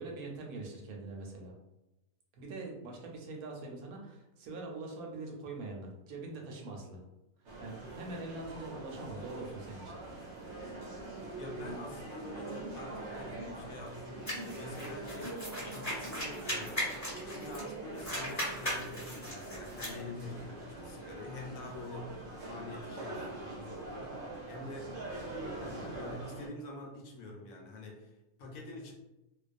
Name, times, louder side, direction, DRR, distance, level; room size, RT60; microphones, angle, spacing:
voice 1, 0.0-1.5 2.3-7.0 7.6-9.9, right 3 dB, 85° right, 0 dB, 1.1 m, -43 dB
sound 1, 7.5-26.5, right 2 dB, 60° right, 0.8 m, -44 dB
voice 2, 11.4-16.9 17.2-25.0 25.6-28.9, left 2 dB, 75° left, 0 dB, 1.0 m, -46 dB
sound 2, 14.3-17.7 18.0-20.0, left 1 dB, 15° left, 0.9 m, -38 dB
2.4 x 2.2 x 2.4 m, 0.94 s
omnidirectional pair, 1.5 m